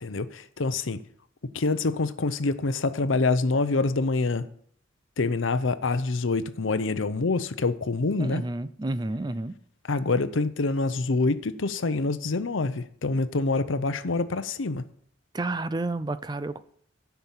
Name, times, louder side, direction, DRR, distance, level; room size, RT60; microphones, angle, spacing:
voice 1, 0.0-1.0 1.5-4.5 5.2-8.4 9.9-14.9, left 3 dB, 75° left, 0.7 m, -26 dB
voice 2, 8.2-9.6 15.3-16.6, right 2 dB, 20° right, 0.4 m, -30 dB
11.5 x 5.9 x 7.3 m
head